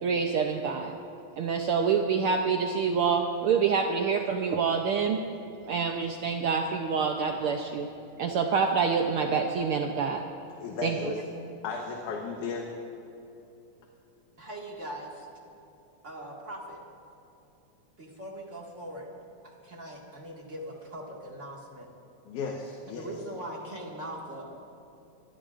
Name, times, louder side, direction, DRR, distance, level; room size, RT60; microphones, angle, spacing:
voice 1, 0.0-1.0 1.4-5.2 5.7-7.9 8.2-10.2 10.8-11.1, right 5 dB, 90° right, 3 dB, 1.2 m, -27 dB
voice 2, 10.6-11.2 11.6-12.7 22.3-23.1, left 5 dB, 80° left, 0 dB, 2.6 m, -35 dB
voice 3, 14.4-15.3 16.0-16.8 18.0-19.1 19.4-21.9 22.9-24.6, right 1 dB, 30° right, -2 dB, 1.9 m, -41 dB
26.0 x 19.5 x 2.5 m, 2.9 s
omnidirectional pair, 3.4 m